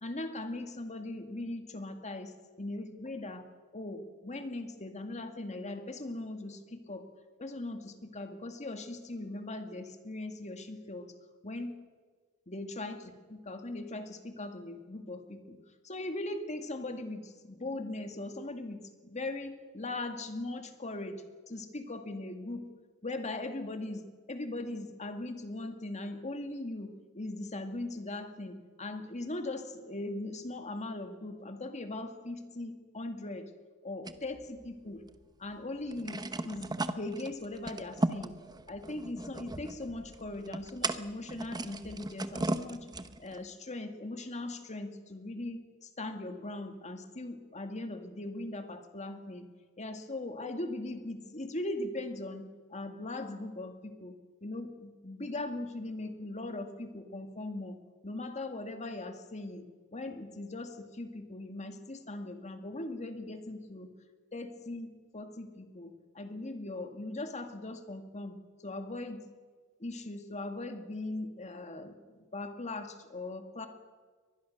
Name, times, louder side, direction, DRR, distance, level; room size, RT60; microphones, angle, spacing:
voice 1, 0.0-3.5 3.7-7.1 7.4-11.1 11.4-11.8 12.5-15.6 15.8-22.7 23.0-24.0 24.3-33.5 33.8-35.0 35.4-38.4 38.7-42.9 43.2-49.5 49.8-52.4 52.7-54.1 54.4-57.8 58.0-63.9 64.3-68.4 68.6-69.2 69.8-73.7, left 2 dB, 30° left, 6 dB, 2.0 m, -40 dB
sound 1, 34.1-35.2 35.5-35.6 35.9-43.4, right 2 dB, 20° right, 0.9 m, -37 dB
24.0 x 20.0 x 6.5 m, 1.4 s
head